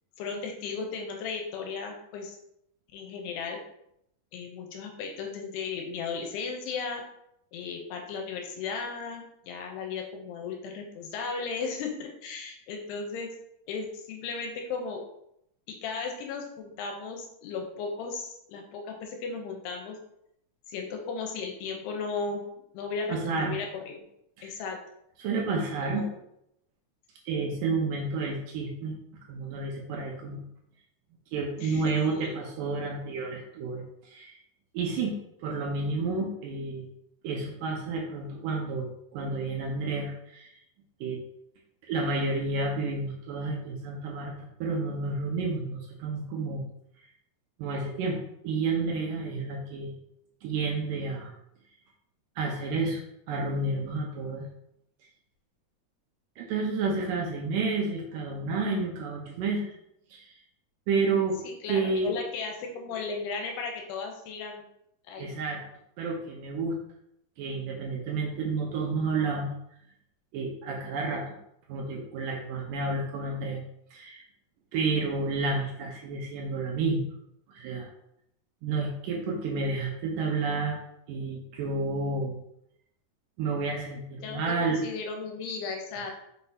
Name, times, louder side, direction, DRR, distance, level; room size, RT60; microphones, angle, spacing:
voice 1, 0.2-2.4 2.9-3.6 4.3-7.0 7.5-13.3 13.7-15.0 15.7-20.0 20.7-22.5 22.7-24.0 24.4-24.8 25.8-26.1 31.6-32.4 61.4-64.7 65.1-65.4 84.2-86.1, left 4 dB, 85° left, 3 dB, 2.8 m, -35 dB
voice 2, 23.1-23.6 24.4-24.6 25.2-26.1 27.3-29.0 29.3-30.4 31.3-34.4 34.7-35.2 35.4-36.9 37.2-40.6 41.0-41.2 41.9-46.6 47.6-48.2 48.4-50.0 50.4-51.3 52.4-53.0 53.3-54.5 56.4-59.8 60.1-60.3 60.9-61.4 61.7-62.1 65.2-65.6 66.0-66.8 67.4-69.5 70.3-71.3 71.7-73.6 73.9-74.2 74.7-77.0 77.5-77.9 78.6-80.8 81.1-82.4 83.4-84.8, right 3 dB, 75° right, -1 dB, 2.0 m, -30 dB
6.3 x 5.5 x 2.7 m, 0.77 s
omnidirectional pair, 4.7 m